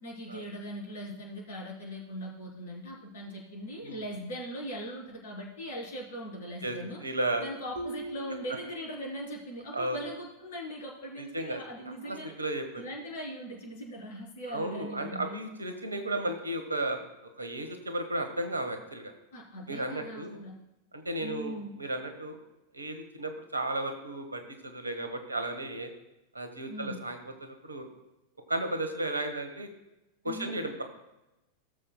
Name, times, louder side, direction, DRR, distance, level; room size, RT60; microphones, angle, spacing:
voice 1, 0.0-7.0 7.4-12.3 12.8-15.4 19.3-20.5 21.2-21.8 26.7-27.0 30.2-30.6, equal, 60° left, -2 dB, 3.4 m, -40 dB
voice 2, 6.6-7.4 9.7-10.0 11.2-11.6 12.0-12.8 14.5-19.1 19.7-20.4 20.9-22.4 22.7-25.9 26.3-27.9 28.5-29.7 30.2-30.8, right 1 dB, 80° right, 6 dB, 1.2 m, -34 dB
sound 1, 7.8-9.5, right 1 dB, 60° right, 1.4 m, -42 dB
17.0 x 7.4 x 2.2 m, 0.94 s
figure-of-eight pair, 90°, 0 cm